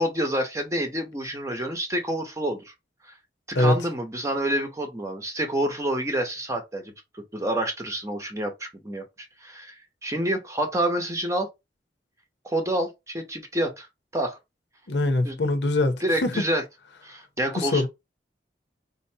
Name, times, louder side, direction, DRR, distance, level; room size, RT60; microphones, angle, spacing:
voice 1, 0.0-2.7 3.0-3.1 3.6-9.0 9.4-11.5 12.4-13.9 14.1-14.4 15.2-15.4 16.0-16.6 17.0-17.9, right 1 dB, 15° right, 0.8 m, -28 dB
voice 2, 14.9-16.4 17.6-17.9, left 2 dB, 80° left, 0.7 m, -23 dB
4.3 x 2.7 x 2.8 m
head